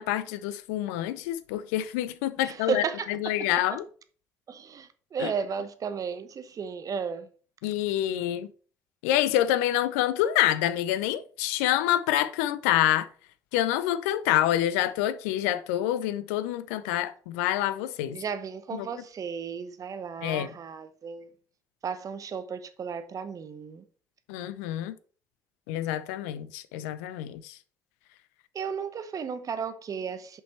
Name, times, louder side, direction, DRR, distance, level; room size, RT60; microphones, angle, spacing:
voice 1, 0.0-2.8 3.1-3.8 5.2-5.3 7.6-8.5 9.0-13.1 13.5-18.2 18.7-18.9 20.2-20.5 24.3-24.9 25.7-27.6, left 13 dB, 75° left, 0.5 m, -27 dB
voice 2, 2.4-3.1 3.4-3.8 4.5-7.3 18.1-21.3 21.8-23.8 28.5-30.4, right 6 dB, 45° right, 0.9 m, -34 dB
6.4 x 5.4 x 4.3 m
hypercardioid pair, 50°, 8 cm